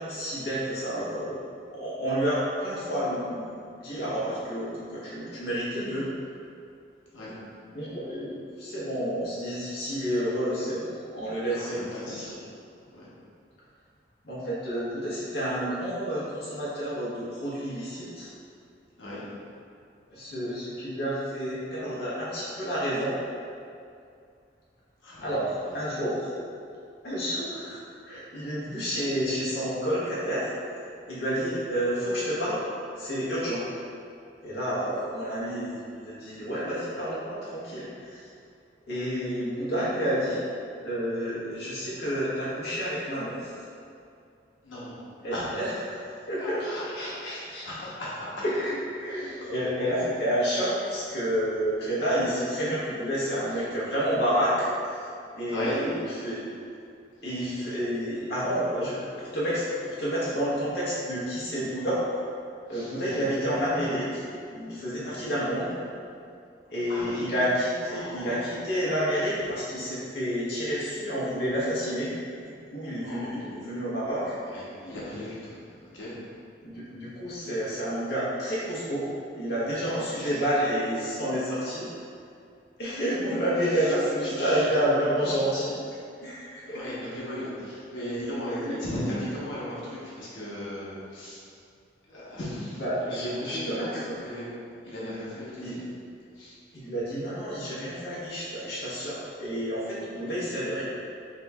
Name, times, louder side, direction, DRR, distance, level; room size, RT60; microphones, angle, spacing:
voice 1, 0.0-3.5 3.8-6.1 7.7-12.4 14.2-18.3 20.1-23.2 25.2-26.3 27.0-27.8 28.1-30.5 31.1-32.6 33.0-33.6 34.4-38.3 38.9-40.4 40.8-43.5 45.2-46.0 46.3-47.7 48.4-55.9 56.2-56.5 57.2-62.0 62.7-64.2 64.5-65.8 66.7-72.1 72.7-74.3 76.6-79.1 79.3-81.9 82.8-85.8 86.2-86.8 88.6-88.7 92.8-94.2 95.6-95.8 96.7-100.8, equal, 60° left, -9 dB, 0.9 m, -29 dB
voice 2, 11.5-12.3 12.9-13.1 19.0-19.2 25.0-25.3 28.7-28.8 44.6-45.0 45.3-45.7 46.4-48.4 49.1-49.5 55.5-55.8 62.7-63.2 66.9-67.2 67.9-68.5 73.0-73.6 74.5-76.1 79.8-80.4 83.8-83.9 84.4-84.7 86.6-91.4 92.1-94.5 94.8-95.9 96.4-96.6, left 1 dB, 90° left, -8 dB, 0.9 m, -37 dB
5.9 x 2.7 x 2.3 m, 2.4 s
head